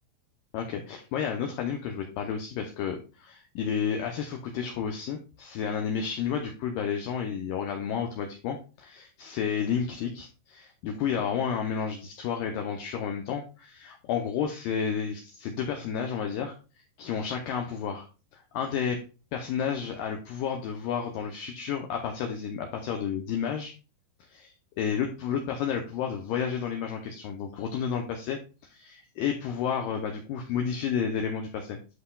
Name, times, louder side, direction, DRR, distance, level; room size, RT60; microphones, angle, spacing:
voice 1, 0.5-16.5 17.0-18.1 18.3-19.0 19.3-23.7 24.3-31.8, left 7 dB, 80° left, 3 dB, 2.0 m, -31 dB
9.8 x 5.6 x 2.3 m, 0.33 s
omnidirectional pair, 4.8 m